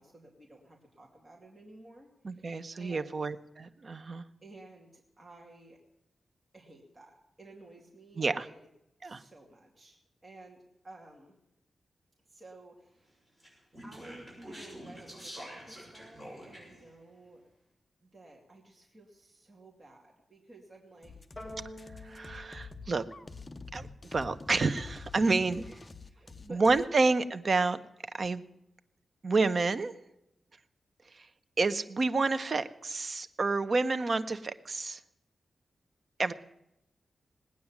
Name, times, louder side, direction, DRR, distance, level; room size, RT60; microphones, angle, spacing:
voice 1, 0.0-3.2 4.4-5.8 6.5-8.5 9.0-11.3 12.2-13.2 13.8-17.4 18.0-21.2 25.2-26.9, right 2 dB, 25° right, -1 dB, 2.5 m, -53 dB
voice 2, 2.2-4.2 8.2-8.4 9.0-9.2 22.0-23.0 23.7-25.6 26.5-27.8 28.1-28.4 29.2-29.9 31.1-31.3 31.6-35.0 36.2-36.3, right 3 dB, 45° right, 10 dB, 0.8 m, -29 dB
Speech, 13.4-16.8, equal, 5° right, 7.2 m, -46 dB
sound 1, 21.0-26.9, left 3 dB, 25° left, 0.7 m, -47 dB
sound 2, 21.4-23.9, equal, 10° left, 3.5 m, -48 dB
19.0 x 9.4 x 7.2 m, 0.84 s
wide cardioid pair, 130°, 0 cm